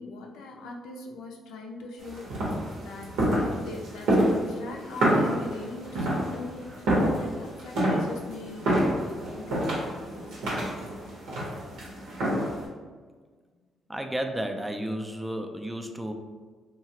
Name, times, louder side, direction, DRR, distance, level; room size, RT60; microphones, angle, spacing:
voice 1, 0.0-2.2 2.8-6.6 7.0-8.7 9.1-10.3, left 3 dB, 90° left, 1 dB, 0.5 m, -41 dB
sound 1, 2.0-12.7, right 1 dB, 90° right, 0.9 m, -28 dB
voice 2, 13.9-16.1, right 1 dB, 10° right, 4 dB, 0.3 m, -32 dB
2.9 x 2.4 x 2.8 m, 1.5 s
cardioid pair, 90°, 0 cm